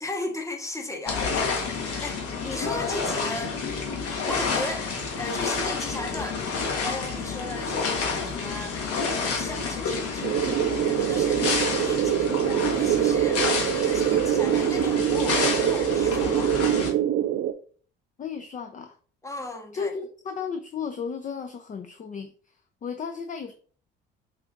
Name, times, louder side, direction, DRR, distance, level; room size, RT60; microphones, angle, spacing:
voice 1, 0.0-3.6 4.3-4.9 5.2-6.4 6.8-8.8 9.1-16.6 19.2-19.9, left 2 dB, 10° left, 1.0 m, -36 dB
sound 1, 1.1-16.9, left 4 dB, 50° left, 1.2 m, -29 dB
sound 2, 10.2-17.5, right 11 dB, 40° right, 0.4 m, -24 dB
voice 2, 18.2-19.0 19.7-23.5, left 6 dB, 25° left, 0.5 m, -34 dB
5.5 x 2.5 x 2.4 m
hypercardioid pair, 55°, 29 cm